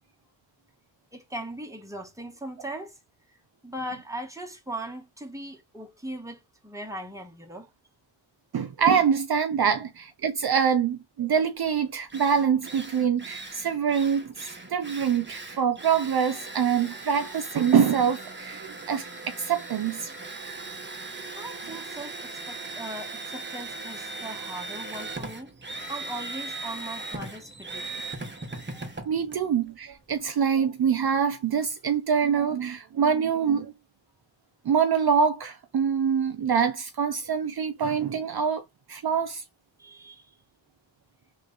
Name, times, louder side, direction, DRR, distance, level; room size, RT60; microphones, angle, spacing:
voice 1, 1.1-3.0 3.6-7.7 21.4-25.5 25.9-27.9 39.8-40.3, right 1 dB, 5° right, 1.4 m, -39 dB
voice 2, 8.5-20.1 29.1-33.7 34.7-38.6 38.9-39.4, right 7 dB, 55° right, 0.6 m, -25 dB
Drill, 11.7-11.8 12.1-30.2, right 3 dB, 25° right, 1.1 m, -39 dB
3.3 x 3.1 x 3.9 m
cardioid pair, 55°, 48 cm